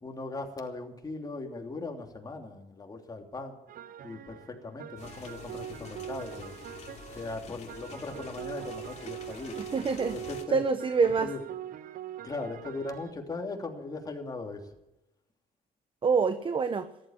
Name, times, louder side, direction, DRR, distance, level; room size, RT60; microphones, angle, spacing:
voice 1, 0.0-3.6 4.0-6.5 7.1-9.6 10.1-10.6 11.2-11.4 12.2-14.6, left 3 dB, 20° left, 3 dB, 3.0 m, -39 dB
sound 1, 3.7-13.1, right 11 dB, 55° right, 0.8 m, -43 dB
sound 2, 5.0-10.4, left 5 dB, 40° left, 3.0 m, -47 dB
voice 2, 9.6-10.2 10.5-11.3 16.0-16.9, right 5 dB, 30° right, 10 dB, 1.0 m, -26 dB
14.0 x 12.0 x 7.4 m, 0.93 s
cardioid pair, 110°, 17 cm